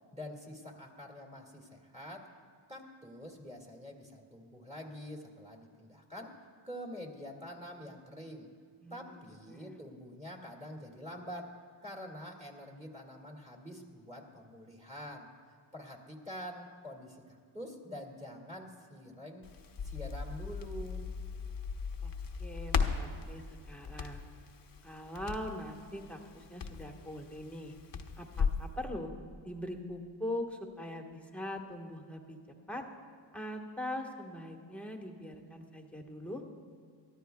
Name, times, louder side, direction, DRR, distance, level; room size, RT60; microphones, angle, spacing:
voice 1, 0.1-2.3 2.7-6.4 6.6-8.5 8.9-11.6 11.8-15.3 15.7-19.5 19.8-21.1, equal, 15° right, -1 dB, 2.2 m, -46 dB
voice 2, 8.8-9.2 9.5-9.7 22.0-22.1 22.4-24.3 24.8-27.7 28.2-29.1 29.4-32.4 32.7-32.8 33.3-36.4, left 1 dB, 5° left, 2 dB, 1.4 m, -41 dB
Crackle, 19.4-28.7, left 5 dB, 45° left, 0.9 m, -37 dB
23.0 x 14.0 x 2.3 m, 2.1 s
cardioid pair, 90°, 48 cm